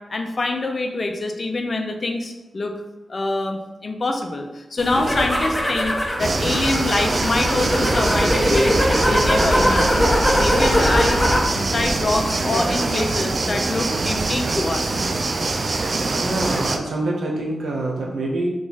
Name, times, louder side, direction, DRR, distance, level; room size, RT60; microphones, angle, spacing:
voice 1, 0.1-2.7 3.1-5.9 6.2-8.8 9.0-15.0, left 2 dB, 50° left, 4 dB, 0.5 m, -25 dB
sound 1, 4.8-11.5 11.9-12.4, equal, 10° left, 0.8 m, -21 dB
sound 2, 6.2-16.8, right 3 dB, 55° right, 0.3 m, -24 dB
voice 2, 16.2-18.5, right 2 dB, 85° right, -1 dB, 0.7 m, -25 dB
3.0 x 2.4 x 3.9 m, 1.0 s
cardioid pair, 65°, 0 cm